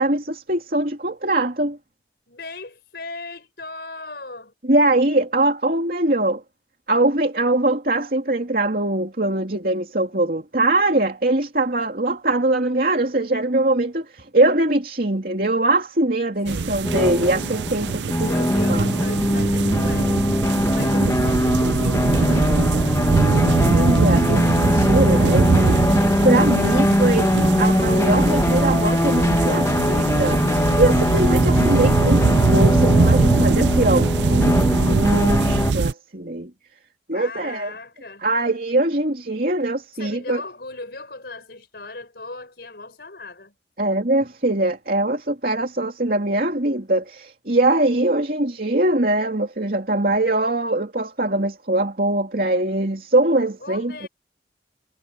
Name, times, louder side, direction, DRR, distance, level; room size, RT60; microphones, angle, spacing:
voice 1, 0.0-1.8 4.7-6.4 6.9-18.3 18.7-18.8 23.1-23.2 23.4-25.8 26.2-27.3 27.6-30.4 30.8-34.5 34.8-36.5 37.1-37.7 38.2-40.4 43.8-54.1, right 2 dB, 55° right, 2.9 m, -22 dB
voice 2, 2.3-4.5 16.4-16.8 18.2-23.1 26.6-27.5 37.1-38.3 40.0-43.5 53.6-54.1, left 2 dB, 65° left, 5.3 m, -38 dB
sound 1, 16.5-35.9, right 4 dB, 80° right, 0.5 m, -22 dB
sound 2, 16.8-35.7, left 1 dB, 15° left, 1.3 m, -21 dB
head